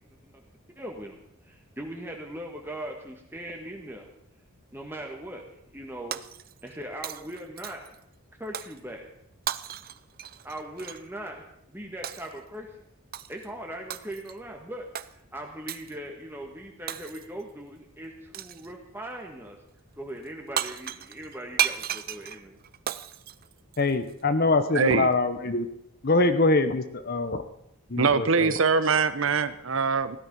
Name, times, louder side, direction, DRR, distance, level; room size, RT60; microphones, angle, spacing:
voice 1, 0.8-4.1 4.7-6.2 6.6-7.8 8.4-9.0 10.4-12.7 13.3-19.6 20.0-22.6, right 1 dB, 10° right, 1 dB, 1.5 m, -40 dB
Shatter, 6.1-6.8 7.0-8.0 8.5-8.8 9.5-11.0 12.0-12.4 13.1-13.5 13.9-14.4 14.9-15.1 15.7-16.0 16.9-17.4 18.3-18.7 20.3-20.4 20.6-24.1, right 10 dB, 45° right, 0.5 m, -34 dB
voice 2, 23.8-25.7 26.0-27.4 27.9-28.6, left 2 dB, 45° left, 10 dB, 0.9 m, -24 dB
voice 3, 24.7-25.1 28.0-30.2, right 5 dB, 65° right, 13 dB, 0.9 m, -23 dB
16.5 x 12.0 x 5.4 m, 0.77 s
head